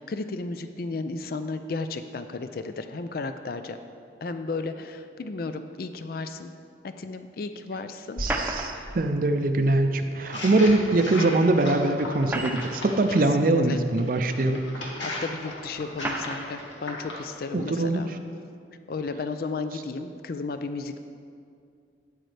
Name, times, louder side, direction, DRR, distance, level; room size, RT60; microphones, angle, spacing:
voice 1, 0.0-3.8 4.2-6.5 6.8-8.2 8.7-8.9 13.1-13.8 15.0-18.1 18.9-21.0, left 3 dB, 50° left, 9 dB, 0.4 m, -34 dB
sound 1, 8.2-9.0 10.7-10.8 12.0-13.0 13.8-13.9 14.9-15.0 16.0-16.5, right 1 dB, 10° right, 0.6 m, -31 dB
voice 2, 8.2-14.9 17.5-18.0, right 2 dB, 50° right, 6 dB, 0.5 m, -23 dB
sound 2, 10.2-13.3 14.0-17.3, left 1 dB, 85° left, 1.8 m, -37 dB
13.0 x 9.1 x 3.3 m, 2.3 s
head